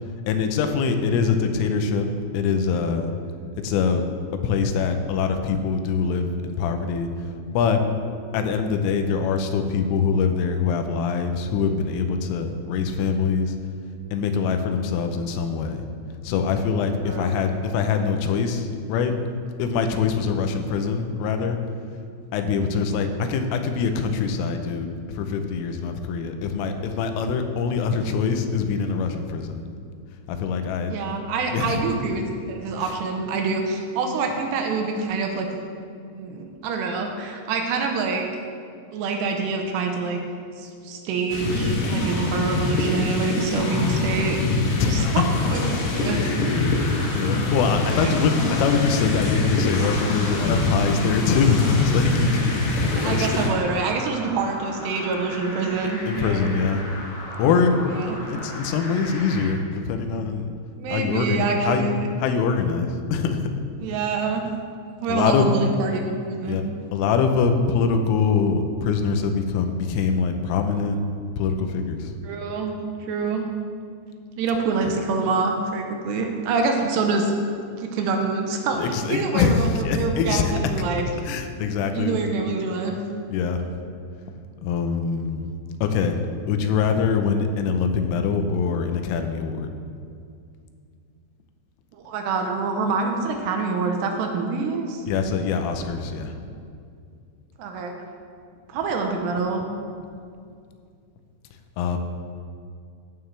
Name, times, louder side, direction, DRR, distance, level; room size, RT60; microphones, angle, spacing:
voice 1, 0.3-3.1 3.6-4.0 4.4-7.1 7.5-7.9 8.3-13.6 14.1-15.8 16.2-19.1 19.6-21.6 22.3-29.6 30.3-31.0 31.5-31.8 32.8-32.9 44.8-45.3 45.7-45.9 46.2-46.4 46.9-53.3 56.1-56.9 57.4-57.9 58.1-60.5 60.9-61.8 62.2-63.5 65.1-65.5 66.5-71.0 71.4-72.1 78.8-80.6 81.2-82.2 83.3-83.7 84.6-85.5 85.8-86.2 86.5-89.7 95.1-96.3 101.8-102.0, left 5 dB, 90° left, 6 dB, 3.4 m, -24 dB
voice 2, 30.9-35.5 36.1-38.3 38.9-40.2 40.6-44.4 44.8-45.2 45.5-46.2 47.9-48.1 53.0-56.4 57.9-58.4 60.8-62.1 63.8-64.4 65.0-66.0 66.3-66.6 72.2-72.7 73.0-73.5 74.4-77.4 77.8-81.1 81.9-82.9 91.9-95.1 97.6-97.9 98.7-99.6, right 4 dB, 75° right, 3 dB, 2.7 m, -26 dB
sound 1, 41.3-53.5, left 2 dB, 65° left, 3.5 m, -24 dB
sound 2, 46.1-59.5, left 1 dB, 50° left, 1.2 m, -37 dB
14.5 x 9.4 x 3.3 m, 2.3 s
omnidirectional pair, 5.6 m